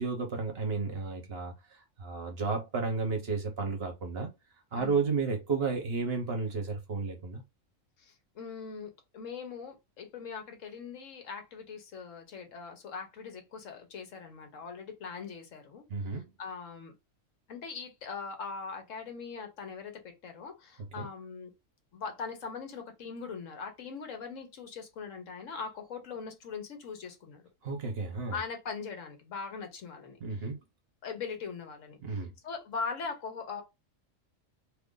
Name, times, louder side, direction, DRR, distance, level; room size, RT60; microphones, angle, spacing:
voice 1, 0.0-4.3 4.7-7.4 15.9-16.3 21.0-21.1 27.6-28.4 30.2-30.6 32.0-32.3, right 4 dB, 55° right, 1.0 m, -32 dB
voice 2, 8.0-15.8 16.4-16.9 17.5-21.5 21.9-27.4 28.3-30.2 31.0-32.0 32.4-33.6, left 5 dB, 75° left, 1.2 m, -41 dB
2.8 x 2.5 x 3.7 m
omnidirectional pair, 1.4 m